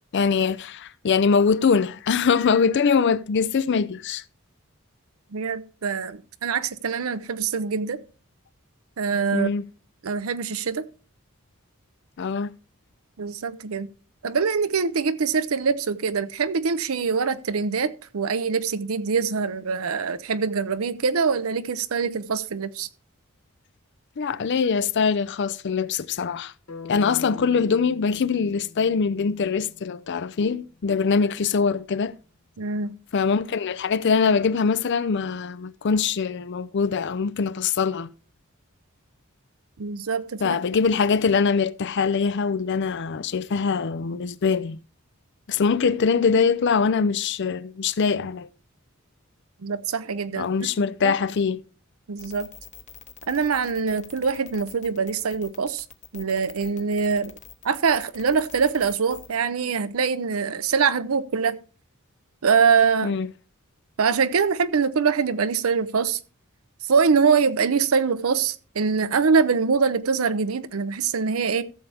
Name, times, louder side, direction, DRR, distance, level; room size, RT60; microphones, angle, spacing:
voice 1, 0.1-4.2 9.3-9.6 12.2-12.5 24.2-26.5 26.9-32.1 33.1-38.1 40.4-44.8 45.5-48.5 50.4-51.6 63.0-63.3, left 5 dB, 55° left, 0.5 m, -23 dB
voice 2, 5.3-8.0 9.0-9.5 10.0-10.8 13.2-13.9 14.2-22.9 32.6-33.0 39.8-40.6 49.6-50.5 51.0-51.1 52.1-52.5 53.3-55.8 56.1-57.3 57.6-61.6 62.4-63.1 64.0-66.2 66.8-71.6, right 5 dB, 75° right, 0.6 m, -24 dB
sound 1, 26.7-30.7, left 5 dB, 85° left, 1.4 m, -43 dB
sound 2, 52.2-59.3, left 7 dB, 35° left, 1.0 m, -45 dB
14.5 x 7.0 x 3.4 m
head